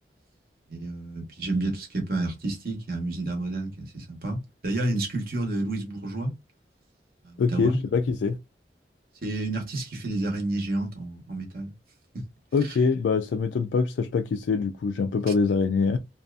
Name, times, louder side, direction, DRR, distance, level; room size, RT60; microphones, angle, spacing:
voice 1, 0.7-6.3 7.2-7.8 9.2-11.7 12.6-12.8, right 2 dB, 55° right, 1.0 m, -30 dB
voice 2, 7.4-8.4 12.5-16.0, left 5 dB, 85° left, 0.3 m, -24 dB
2.6 x 2.4 x 2.2 m
head